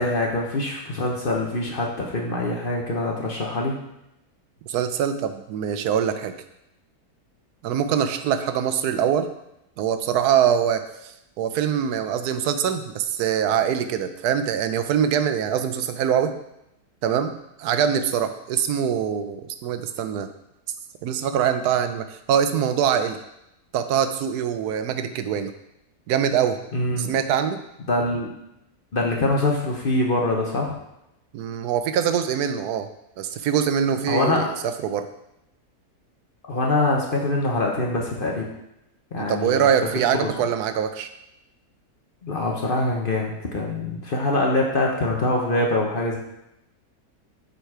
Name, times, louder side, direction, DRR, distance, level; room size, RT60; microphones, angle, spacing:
voice 1, 0.0-3.8 26.7-27.1 27.9-28.3 28.9-30.7 34.1-34.4 36.5-38.5 39.1-39.7 40.0-40.3 42.2-46.2, left 2 dB, 40° left, -1 dB, 0.9 m, -24 dB
voice 2, 4.7-6.3 7.6-9.3 9.8-16.3 17.0-17.3 17.6-20.3 21.0-23.2 23.7-25.5 26.1-26.6 27.0-27.6 31.3-32.9 33.2-35.1 39.2-41.1, right 8 dB, 85° right, 9 dB, 1.1 m, -23 dB
7.1 x 4.1 x 4.7 m, 0.86 s
omnidirectional pair, 1.6 m